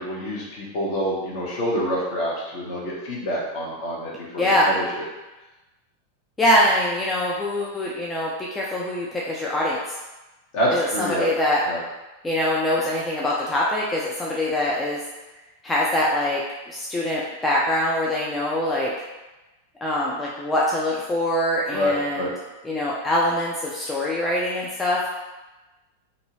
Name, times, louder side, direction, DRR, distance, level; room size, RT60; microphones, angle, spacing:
voice 1, 0.0-4.8 10.5-11.3 11.7-11.8 21.7-22.3, equal, 45° left, -5 dB, 1.0 m, -26 dB
voice 2, 4.4-4.7 6.4-9.8 10.7-11.6 12.2-15.0 15.6-16.4 16.7-18.9 19.8-22.3 22.6-25.1, left 1 dB, 10° left, -5 dB, 0.4 m, -23 dB
2.6 x 2.6 x 2.9 m, 1.1 s
figure-of-eight pair, 90°, 0 cm